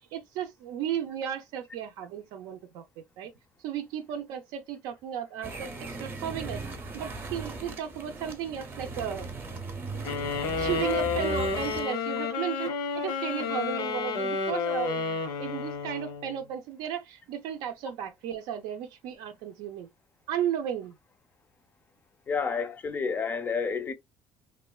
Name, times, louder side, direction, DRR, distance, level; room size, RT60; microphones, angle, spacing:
voice 1, 0.1-3.3 3.6-5.7 6.0-6.6 6.9-9.3 10.6-19.9 20.3-20.9, right 9 dB, 85° right, 0.5 m, -34 dB
sound 1, 5.4-11.9, right 2 dB, 30° right, 0.6 m, -38 dB
sound 2, 10.0-16.4, left 4 dB, 85° left, 0.7 m, -30 dB
voice 2, 22.3-23.9, left 5 dB, 25° left, 0.4 m, -30 dB
2.9 x 2.1 x 2.2 m
cardioid pair, 130°, 7 cm